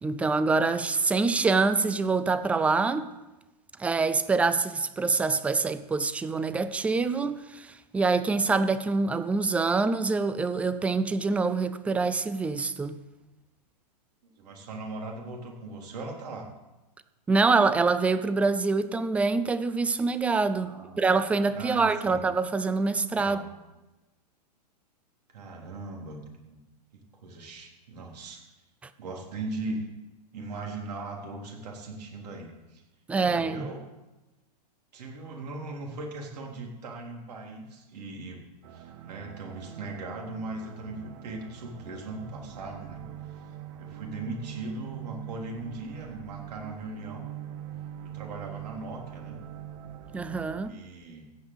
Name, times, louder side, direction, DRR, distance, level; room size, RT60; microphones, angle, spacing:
voice 1, 0.0-3.1 3.8-13.0 17.3-23.4 33.1-33.7 50.1-50.8, right 4 dB, 5° right, 0.4 m, -25 dB
voice 2, 14.2-16.5 20.5-21.1 21.5-22.3 23.1-23.5 25.3-26.6 26.9-28.4 29.0-29.9 30.3-32.8 33.1-33.8 34.9-38.4 38.7-43.0 43.3-43.5 43.8-47.2 48.0-49.4 50.6-51.3, right 2 dB, 70° right, 3.5 m, -39 dB
sound 1, 38.6-50.7, right 10 dB, 45° right, 1.0 m, -43 dB
15.0 x 5.3 x 8.2 m
hypercardioid pair, 140°, 21 cm